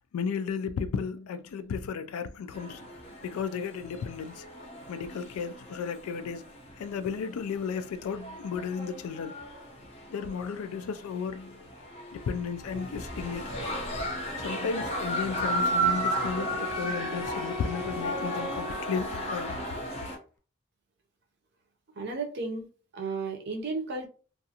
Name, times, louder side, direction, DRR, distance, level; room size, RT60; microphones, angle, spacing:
voice 1, 0.1-2.9 3.2-4.4 4.9-6.4 6.8-9.3 10.1-11.6 12.1-13.5 14.4-19.5, left 6 dB, 80° left, 0.3 m, -34 dB
sound 1, 2.5-20.2, right 1 dB, 30° left, 0.6 m, -35 dB
Wind instrument woodwind instrument, 15.1-19.9, left 1 dB, ahead, 0.8 m, -39 dB
voice 2, 22.0-22.7 22.9-24.1, right 3 dB, 50° right, 0.6 m, -33 dB
2.4 x 2.4 x 2.7 m
head